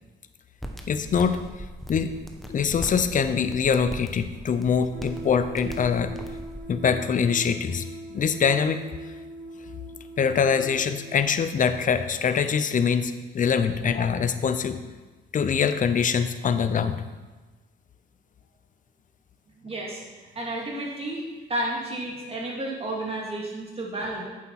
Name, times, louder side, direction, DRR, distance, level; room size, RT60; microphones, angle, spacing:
sound 1, 0.6-6.6, equal, ahead, 1.1 m, -39 dB
voice 1, 0.9-1.4 1.9-2.2 2.5-6.1 6.7-7.8 8.1-8.8 10.2-14.8 15.3-17.0, left 6 dB, 40° left, 10 dB, 0.6 m, -24 dB
sound 2, 4.9-11.2, right 2 dB, 70° right, 1.4 m, -41 dB
voice 2, 19.6-21.2 21.5-24.2, right 1 dB, 30° right, -3 dB, 2.5 m, -32 dB
8.5 x 7.4 x 4.2 m, 1.3 s
cardioid pair, 90°, 20 cm